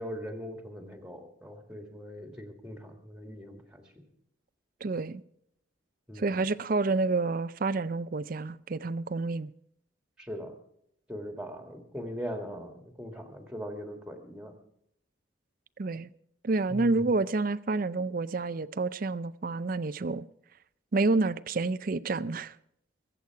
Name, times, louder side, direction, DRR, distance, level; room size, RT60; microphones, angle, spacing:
voice 1, 0.0-4.0 6.1-6.5 10.2-10.5 11.1-14.5 16.7-17.1, equal, 5° right, 1.8 m, -40 dB
voice 2, 4.8-5.2 6.2-9.5 15.8-16.1 16.4-20.2 20.9-22.6, right 3 dB, 45° right, 0.5 m, -29 dB
22.5 x 8.2 x 4.7 m
head